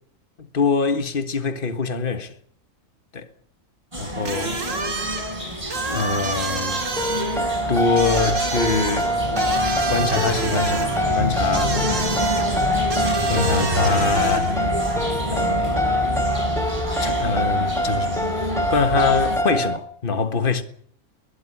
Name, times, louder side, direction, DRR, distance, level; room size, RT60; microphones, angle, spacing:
voice 1, 0.4-2.3 3.1-3.3 4.0-4.6 5.9-6.8 7.7-9.1 9.9-11.8 13.3-14.6 15.3-15.8 17.0-20.6, left 4 dB, 40° left, 1.7 m, -24 dB
sound 1, 3.9-19.4, left 1 dB, 20° right, 5.5 m, -27 dB
sound 2, 4.2-14.7, right 4 dB, 65° right, 2.6 m, -30 dB
sound 3, 7.0-19.8, equal, ahead, 1.6 m, -25 dB
21.5 x 13.0 x 10.0 m
omnidirectional pair, 1.4 m